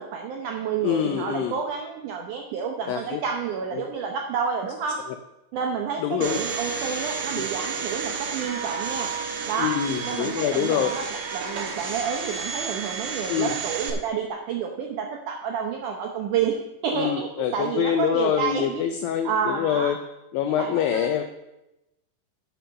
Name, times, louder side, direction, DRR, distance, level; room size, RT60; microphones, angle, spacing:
voice 1, 0.0-5.0 5.5-9.1 9.5-9.7 10.0-16.6 16.8-18.8 19.2-19.9 20.4-21.1, right 7 dB, 85° right, 1 dB, 1.7 m, -29 dB
voice 2, 0.8-1.5 2.9-3.2 3.7-3.8 6.0-6.4 7.3-7.4 9.6-10.9 13.3-13.5 16.9-20.0 20.3-21.2, left 9 dB, 90° left, 7 dB, 2.0 m, -25 dB
Domestic sounds home sounds, 6.2-13.9, right 5 dB, 60° right, 2.0 m, -31 dB
11.5 x 5.7 x 6.4 m, 0.93 s
omnidirectional pair, 4.9 m